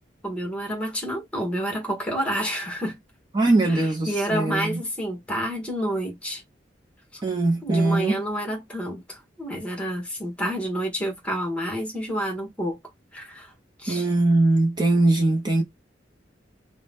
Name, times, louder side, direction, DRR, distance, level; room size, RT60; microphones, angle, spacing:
voice 1, 0.2-3.0 3.7-6.4 7.1-7.2 7.6-12.8 13.1-13.5 13.8-14.1, equal, 5° left, 1.0 m, -29 dB
voice 2, 3.3-4.8 7.2-8.2 13.9-15.6, right 2 dB, 25° right, 0.5 m, -21 dB
2.7 x 2.1 x 3.2 m
head